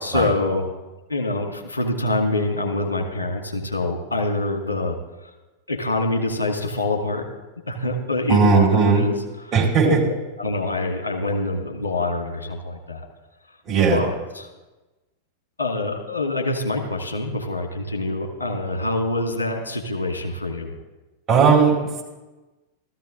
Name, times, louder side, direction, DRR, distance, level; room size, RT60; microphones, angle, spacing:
voice 1, 0.0-0.7 1.1-5.0 5.7-7.3 7.7-9.5 9.8-9.9 10.4-13.0 13.9-14.5 15.6-20.7, left 2 dB, 75° left, 1 dB, 2.2 m, -25 dB
voice 2, 8.3-9.0 9.5-10.0 13.7-14.0 21.3-21.7, right 5 dB, 25° right, -3 dB, 4.6 m, -16 dB
15.0 x 14.0 x 3.9 m, 1.1 s
figure-of-eight pair, 90°, 0 cm